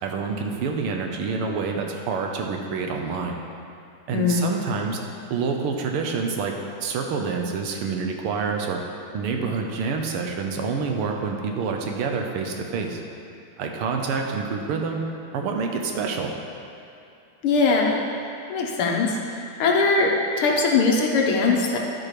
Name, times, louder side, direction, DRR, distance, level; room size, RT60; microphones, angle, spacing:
voice 1, 0.0-3.4 4.1-5.0 5.3-6.5 6.8-8.8 9.1-13.0 13.6-15.0 15.3-16.4, right 5 dB, 85° right, 2 dB, 1.8 m, -27 dB
voice 2, 4.1-4.4 17.4-18.0 18.5-19.1 19.6-20.1 20.4-21.8, left 4 dB, 85° left, -1 dB, 2.0 m, -20 dB
11.5 x 5.1 x 4.9 m, 2.8 s
omnidirectional pair, 2.4 m